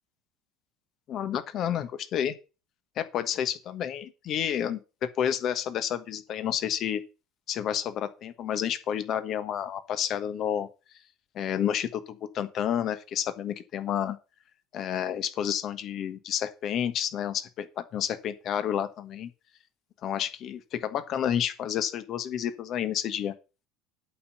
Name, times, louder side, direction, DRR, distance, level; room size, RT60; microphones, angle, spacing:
voice 1, 1.1-2.3 3.0-4.8 5.2-7.0 7.5-10.7 11.3-14.2 14.7-19.3 20.0-23.3, left 9 dB, 45° left, 1.4 m, -30 dB
8.5 x 5.7 x 7.1 m
figure-of-eight pair, 65°, 0 cm